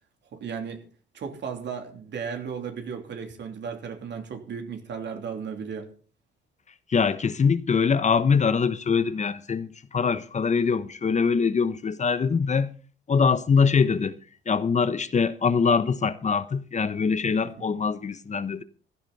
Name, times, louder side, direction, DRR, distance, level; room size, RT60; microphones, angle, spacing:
voice 1, 0.3-0.8 1.1-5.9 17.4-17.7, right 6 dB, 65° right, 3.2 m, -35 dB
voice 2, 6.9-12.7 13.1-14.2 14.5-18.6, left 5 dB, 35° left, 1.0 m, -23 dB
16.0 x 12.5 x 4.2 m
cardioid pair, 90°, 20 cm